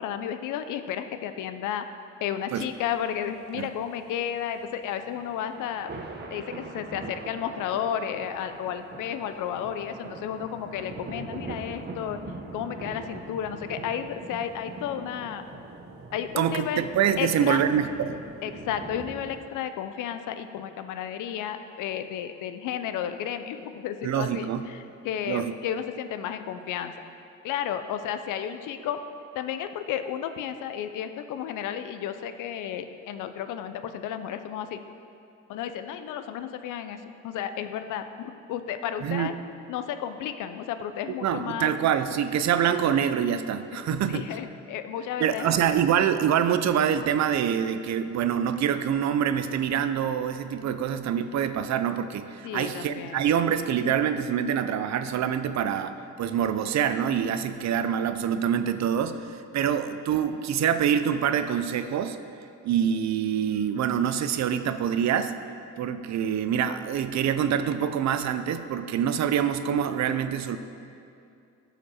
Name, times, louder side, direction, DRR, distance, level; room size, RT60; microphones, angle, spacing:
voice 1, 0.0-1.8 2.2-5.9 6.3-12.2 12.5-15.4 16.1-16.8 17.2-17.6 18.4-26.9 27.4-29.0 29.3-34.8 35.5-39.3 39.7-41.7 43.7-45.6 52.4-53.2, left 9 dB, 90° left, 9 dB, 0.6 m, -33 dB
sound 1, 2.7-19.4, right 3 dB, 35° right, 1.1 m, -42 dB
voice 2, 16.4-18.2 24.0-24.6 25.3-25.5 39.0-39.3 41.2-44.3 45.2-62.2 62.6-65.4 65.8-70.6, right 8 dB, 65° right, 10 dB, 0.6 m, -25 dB
14.0 x 5.1 x 4.3 m, 2.6 s
cardioid pair, 90°, 30 cm